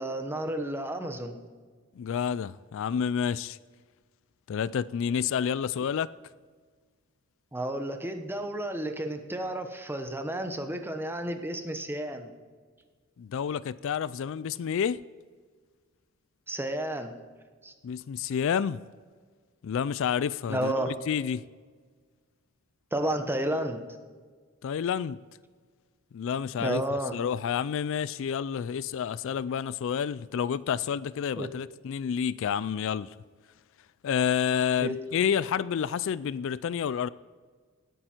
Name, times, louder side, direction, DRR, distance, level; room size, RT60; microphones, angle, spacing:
voice 1, 0.0-1.4 7.5-12.3 16.5-17.1 17.6-17.7 20.5-21.0 22.9-23.8 26.6-27.1 31.4-31.5 34.8-35.0, right 1 dB, 10° right, 1.0 m, -31 dB
voice 2, 2.0-3.6 4.5-6.1 13.2-15.0 17.8-18.8 19.6-21.4 24.6-25.2 26.1-26.8 27.1-33.1 34.0-37.1, left 7 dB, 65° left, 0.3 m, -29 dB
17.5 x 9.3 x 4.4 m
head